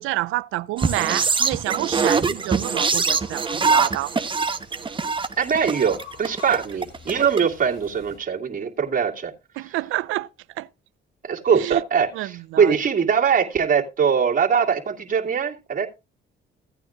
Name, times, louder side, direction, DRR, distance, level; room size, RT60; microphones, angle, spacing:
voice 1, 0.0-4.1 9.6-10.3 10.6-10.7 11.5-11.8 12.1-12.8, right 17 dB, 90° right, 0.5 m, -28 dB
sound 1, 0.8-8.2, left 6 dB, 75° left, 4.4 m, -47 dB
sound 2, 0.8-7.4, right 4 dB, 25° right, 1.0 m, -23 dB
voice 2, 5.4-9.3 11.2-15.9, right 7 dB, 45° right, 2.4 m, -22 dB
16.0 x 9.0 x 2.5 m
cardioid pair, 90°, 20 cm